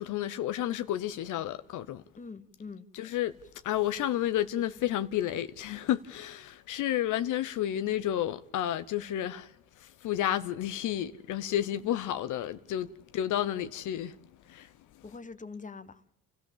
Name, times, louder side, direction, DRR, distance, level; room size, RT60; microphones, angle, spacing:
voice 1, 0.0-2.0 2.9-3.3 3.6-9.5 9.8-12.9 13.1-14.1 14.5-14.7, left 12 dB, 80° left, 0.8 m, -31 dB
voice 2, 2.2-2.9 15.0-16.1, left 4 dB, 25° left, 1.2 m, -44 dB
30.0 x 14.0 x 7.3 m
cardioid pair, 90°, 30 cm